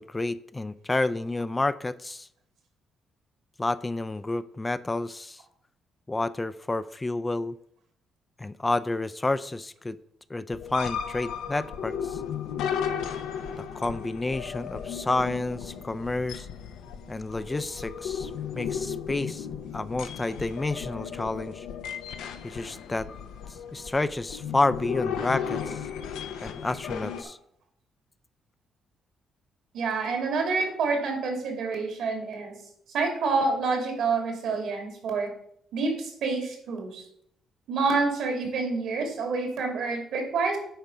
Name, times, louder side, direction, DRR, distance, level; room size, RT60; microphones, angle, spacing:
voice 1, 0.0-2.3 3.6-5.4 6.1-7.6 8.4-10.0 10.3-12.2 13.7-16.5 17.1-19.5 19.7-21.7 22.4-23.1 23.7-25.8 26.4-27.4, left 2 dB, 20° left, 14 dB, 0.4 m, -30 dB
sound 1, 10.5-27.2, left 7 dB, 90° left, 0.8 m, -35 dB
voice 2, 29.7-32.5 32.9-35.3 35.7-37.0 37.7-40.6, right 4 dB, 75° right, 3 dB, 2.6 m, -27 dB
9.0 x 4.8 x 5.5 m, 0.70 s
cardioid pair, 90°, 0 cm